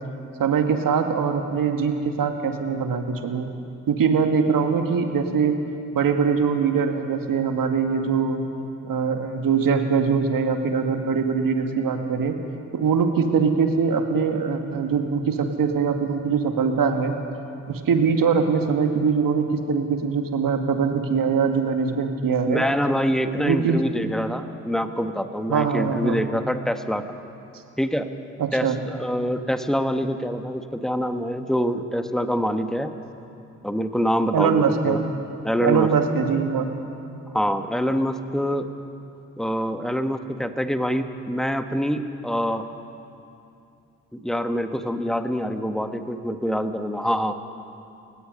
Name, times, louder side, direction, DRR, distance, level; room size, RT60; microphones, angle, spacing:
voice 1, 0.4-3.5 3.9-5.5 5.9-8.4 8.8-12.4 12.7-17.1 17.7-22.6 23.4-23.8 25.5-26.2 28.4-28.8 34.3-35.0 35.6-36.7, right 6 dB, 55° right, 5 dB, 2.2 m, -22 dB
voice 2, 22.5-27.0 27.8-28.1 28.5-32.9 33.6-35.0 35.4-35.9 37.3-38.7 39.4-42.7 44.1-47.3, equal, ahead, 8 dB, 1.6 m, -25 dB
29.0 x 16.5 x 5.4 m, 2.7 s
hypercardioid pair, 40°, 41 cm